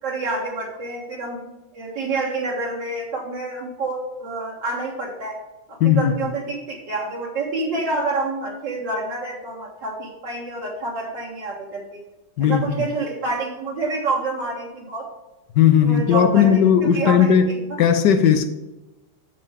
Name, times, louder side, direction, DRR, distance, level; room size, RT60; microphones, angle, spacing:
voice 1, 0.0-5.4 5.7-12.0 12.4-15.1 15.8-17.8, right 3 dB, 65° right, -3 dB, 2.2 m, -28 dB
voice 2, 5.8-6.2 12.4-12.9 15.5-17.5 17.8-18.5, left 8 dB, 65° left, 8 dB, 1.3 m, -16 dB
8.4 x 7.0 x 3.5 m, 1.0 s
omnidirectional pair, 2.1 m